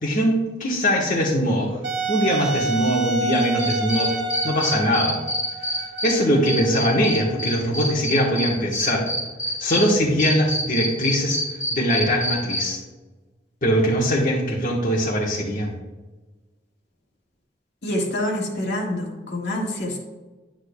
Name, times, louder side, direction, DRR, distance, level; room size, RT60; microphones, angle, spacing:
voice 1, 0.0-1.8 2.1-4.2 4.4-5.2 5.6-9.1 9.6-11.4 11.7-12.8 13.6-15.7, equal, 45° left, -5 dB, 1.3 m, -22 dB
Wind instrument woodwind instrument, 1.8-7.5, right 3 dB, 90° right, 0.9 m, -29 dB
Cricket, 3.3-6.1 6.4-9.8 10.2-12.6, left 1 dB, 15° left, 2.6 m, -26 dB
voice 2, 17.8-20.0, left 1 dB, 65° left, -2 dB, 1.8 m, -26 dB
10.0 x 8.9 x 2.3 m, 1.2 s
head